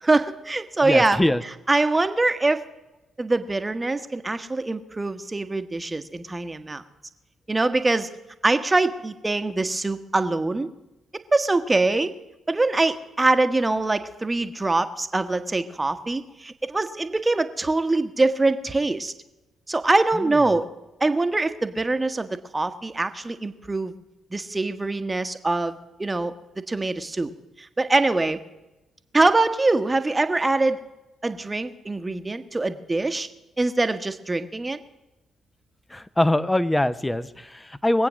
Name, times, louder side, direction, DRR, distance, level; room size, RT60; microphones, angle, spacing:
voice 1, 0.0-1.2 1.7-2.6 3.2-6.8 7.5-8.1 8.4-10.7 11.3-12.1 12.5-19.1 19.7-20.7 21.0-22.3 22.5-23.9 24.3-26.3 26.7-27.3 27.6-28.4 29.1-30.8 31.2-33.3 33.6-34.8, right 2 dB, 25° right, 10 dB, 1.2 m, -23 dB
voice 2, 0.8-1.4 20.1-20.4 35.9-38.1, left 1 dB, 15° left, 14 dB, 0.8 m, -23 dB
22.0 x 8.5 x 6.2 m, 0.98 s
figure-of-eight pair, 40°, 0 cm